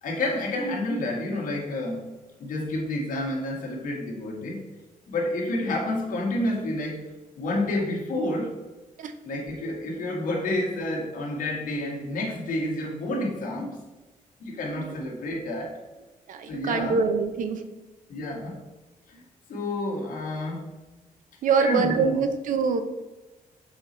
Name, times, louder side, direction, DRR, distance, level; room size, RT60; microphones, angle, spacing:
voice 1, 0.0-2.1 2.4-4.6 5.1-7.0 7.3-8.5 9.2-13.8 14.4-15.8 16.5-17.0 18.1-18.6 19.1-19.2 19.5-20.7 21.6-22.2, left 1 dB, 65° left, -1 dB, 1.6 m, -29 dB
voice 2, 16.3-17.7 21.4-22.8, right 5 dB, 65° right, 9 dB, 0.6 m, -25 dB
6.9 x 4.1 x 4.2 m, 1.1 s
wide cardioid pair, 175°, 15 cm